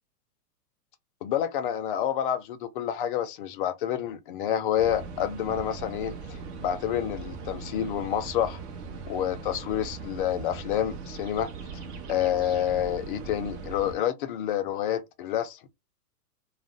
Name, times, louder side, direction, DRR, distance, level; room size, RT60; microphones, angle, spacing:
voice 1, 1.2-8.6 9.1-11.5 12.1-15.6, left 10 dB, 35° left, 0.4 m, -28 dB
sound 1, 4.8-13.9, right 5 dB, 45° right, 0.9 m, -40 dB
2.4 x 2.1 x 3.6 m
hypercardioid pair, 125°, 47 cm